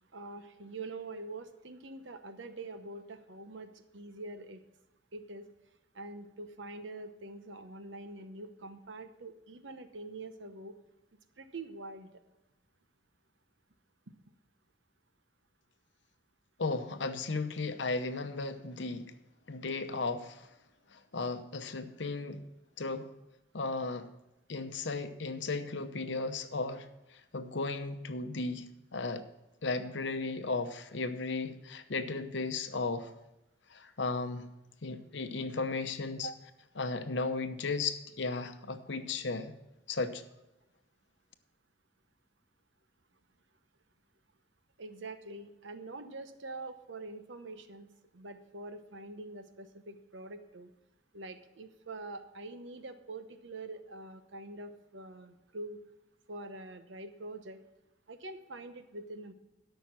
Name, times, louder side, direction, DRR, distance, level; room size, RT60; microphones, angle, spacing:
voice 1, 0.1-4.6 5.1-5.5 5.9-10.8 11.4-12.1 36.2-36.4 44.8-47.9 48.1-50.7 51.1-55.8 56.3-57.6 58.1-59.3, right 2 dB, 80° right, 0.9 m, -45 dB
voice 2, 16.6-19.1 19.5-20.4 20.9-22.4 22.8-23.1 23.5-24.1 24.5-26.9 27.3-29.2 29.6-33.1 33.7-34.5 34.8-36.3 36.8-39.5 39.9-40.2, left 3 dB, 75° left, 0.8 m, -35 dB
13.0 x 5.8 x 5.9 m
head